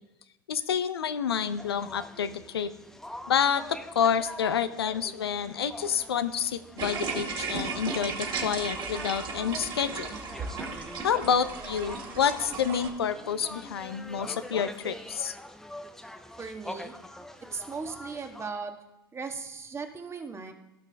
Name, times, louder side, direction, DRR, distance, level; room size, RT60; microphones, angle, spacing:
voice 1, 0.5-2.7 3.3-10.1 11.0-15.4, left 7 dB, 85° left, 11 dB, 0.5 m, -28 dB
sound 1, 1.4-18.5, left 1 dB, 5° left, 0.8 m, -44 dB
sound 2, 6.8-12.9, right 5 dB, 40° right, 2.3 m, -35 dB
voice 2, 16.4-16.9 17.5-18.7 19.1-20.5, right 4 dB, 20° right, 5 dB, 1.3 m, -37 dB
16.5 x 5.9 x 3.4 m, 0.92 s
hypercardioid pair, 90°, 13 cm